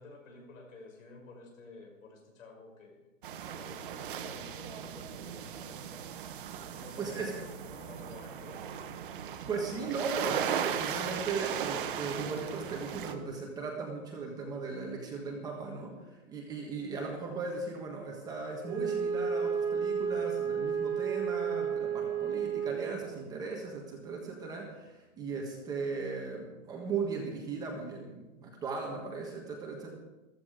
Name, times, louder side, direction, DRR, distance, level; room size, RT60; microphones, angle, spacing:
voice 1, 0.0-3.1 3.5-6.1 6.8-8.9 24.7-24.8, left 3 dB, 75° left, 0 dB, 6.8 m, -52 dB
sound 1, 3.2-13.1, right 8 dB, 40° right, 1.1 m, -37 dB
voice 2, 7.0-7.3 9.5-29.9, right 4 dB, 10° right, 0 dB, 1.4 m, -37 dB
Wind instrument woodwind instrument, 18.6-23.2, right 7 dB, 60° right, 2.9 m, -32 dB
14.5 x 14.5 x 5.0 m, 1.1 s
hypercardioid pair, 170°, 39 cm